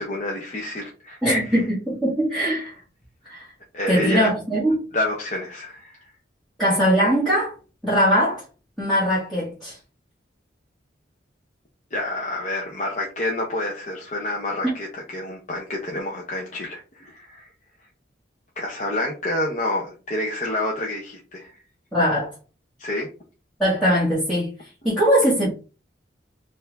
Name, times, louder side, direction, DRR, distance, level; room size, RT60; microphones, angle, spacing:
voice 1, 0.0-1.5 3.7-4.3 4.9-6.0 11.9-17.5 18.6-21.5 22.8-23.1, left 1 dB, 40° left, 0.8 m, -28 dB
voice 2, 1.2-2.8 3.3-3.5 3.9-4.8 6.6-7.5 7.8-8.4 8.8-9.8 14.6-14.7 21.9-22.3 23.6-24.5 24.8-25.5, equal, ahead, 1.7 m, -21 dB
4.5 x 2.7 x 3.4 m
head